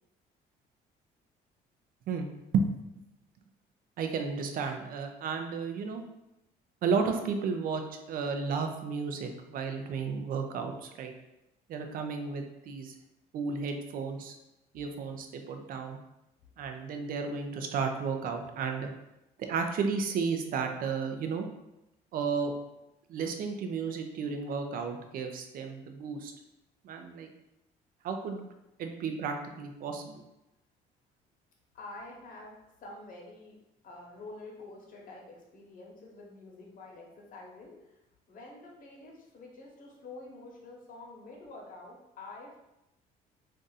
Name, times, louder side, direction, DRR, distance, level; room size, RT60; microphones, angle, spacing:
voice 1, 4.0-6.0 6.8-7.8 8.1-11.1 11.7-12.9 13.3-14.3 14.7-16.0 16.6-18.9 19.4-21.5 22.1-22.5 23.1-26.3 26.8-27.3 28.0-28.5 28.8-30.2, right 5 dB, 55° right, 5 dB, 0.5 m, -33 dB
voice 2, 31.7-33.6 33.8-38.0 38.3-42.6, left 2 dB, 55° left, -1 dB, 1.0 m, -48 dB
2.6 x 2.4 x 3.9 m, 0.92 s
cardioid pair, 110°, 17 cm